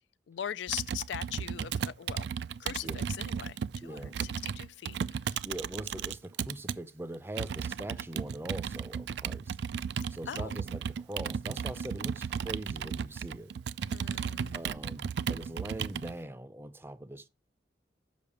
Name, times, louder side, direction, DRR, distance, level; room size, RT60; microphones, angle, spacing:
voice 1, 0.3-2.3 2.6-2.9 3.2-3.6 3.8-5.0 10.3-10.5 13.9-14.6, left 10 dB, 75° left, 0.3 m, -40 dB
Computer keyboard, 0.7-6.8 7.4-16.1, right 7 dB, 65° right, 0.3 m, -35 dB
voice 2, 3.8-4.2 5.4-9.6 10.1-13.5 14.5-17.3, right 1 dB, 15° right, 0.5 m, -42 dB
7.1 x 5.8 x 4.9 m
head